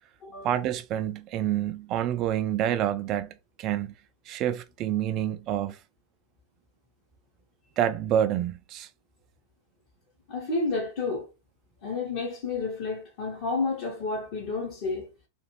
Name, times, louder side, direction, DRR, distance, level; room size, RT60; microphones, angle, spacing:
voice 1, 0.4-3.3 3.6-3.9 4.3-5.8 7.8-8.9, right 11 dB, 35° right, 0.3 m, -27 dB
voice 2, 10.3-11.2 11.8-15.1, left 3 dB, 45° left, 0.9 m, -30 dB
2.5 x 2.4 x 2.9 m
figure-of-eight pair, 90°, 0 cm